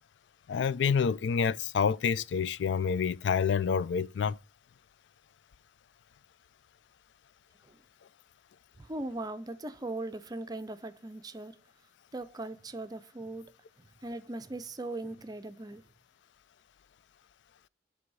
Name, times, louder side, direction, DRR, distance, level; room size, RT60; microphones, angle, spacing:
voice 1, 0.5-4.4, left 6 dB, 85° left, 0.4 m, -28 dB
voice 2, 8.8-11.6 12.1-13.5 14.0-15.8, right 2 dB, 20° right, 0.5 m, -39 dB
8.0 x 3.4 x 5.3 m
head